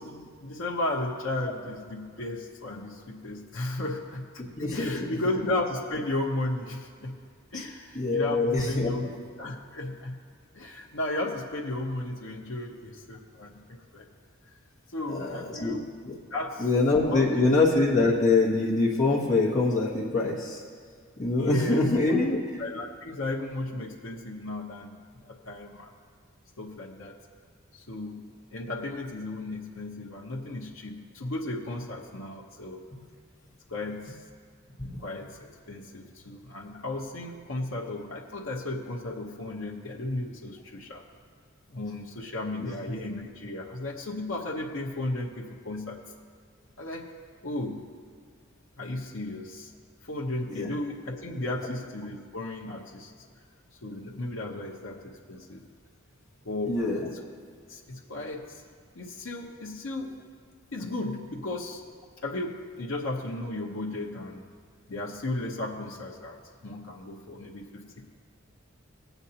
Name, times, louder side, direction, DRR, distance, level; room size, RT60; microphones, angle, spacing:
voice 1, 0.0-4.4 4.7-7.2 7.5-9.0 9.4-10.2 10.5-14.1 14.9-15.8 16.3-16.7 17.0-17.5 21.4-25.9 26.6-27.2 27.7-32.8 33.7-34.2 35.0-35.4 35.7-41.0 41.7-46.0 46.8-47.1 47.4-47.8 48.8-49.7 50.0-53.1 53.8-55.6 56.4-56.8 57.1-57.2 57.7-58.6 58.9-60.1 60.7-61.8 62.2-64.4 64.9-68.1, left 2 dB, 75° left, 0 dB, 0.9 m, -34 dB
voice 2, 4.6-5.0 7.5-7.6 7.9-9.1 15.1-15.8 16.0-16.1 16.6-20.6 21.2-22.4 34.8-35.0 42.6-42.7 50.5-50.7 56.7-57.1, left 3 dB, 40° left, -7 dB, 1.4 m, -24 dB
18.0 x 8.0 x 2.9 m, 2.1 s
head